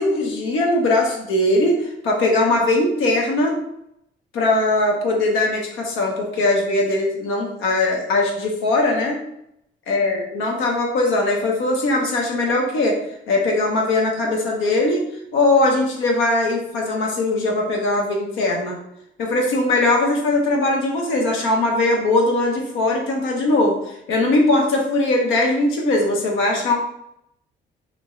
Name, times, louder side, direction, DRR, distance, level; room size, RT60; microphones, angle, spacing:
voice 1, 0.0-3.6 4.3-9.2 9.9-13.0 13.3-15.0 15.3-18.8 19.2-26.7, left 2 dB, 85° left, 1 dB, 0.7 m, -20 dB
2.6 x 2.3 x 2.9 m, 0.78 s
cardioid pair, 90°, 20 cm